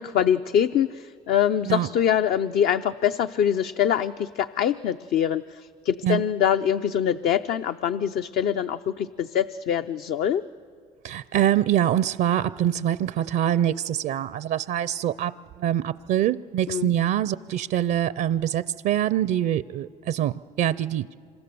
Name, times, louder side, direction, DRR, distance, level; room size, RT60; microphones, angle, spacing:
voice 1, 0.0-10.4 16.7-16.9, left 9 dB, 65° left, 9 dB, 0.6 m, -24 dB
voice 2, 11.0-15.3 15.6-21.1, right 11 dB, 70° right, 17 dB, 0.5 m, -24 dB
26.5 x 23.5 x 6.9 m, 2.3 s
supercardioid pair, 75°, 17 cm